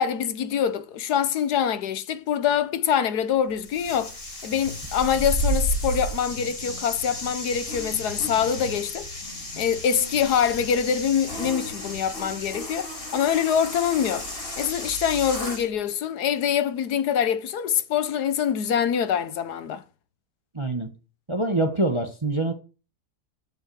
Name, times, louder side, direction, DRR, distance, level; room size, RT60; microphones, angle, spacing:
voice 1, 0.0-4.1 4.4-9.1 9.6-14.3 14.6-19.8, left 8 dB, 80° left, 1.4 m, -24 dB
sound 1, 3.6-15.7, equal, 60° left, 6.6 m, -32 dB
voice 2, 20.5-20.9 21.3-22.5, right 2 dB, 20° right, 1.2 m, -25 dB
14.0 x 5.6 x 4.8 m
omnidirectional pair, 1.7 m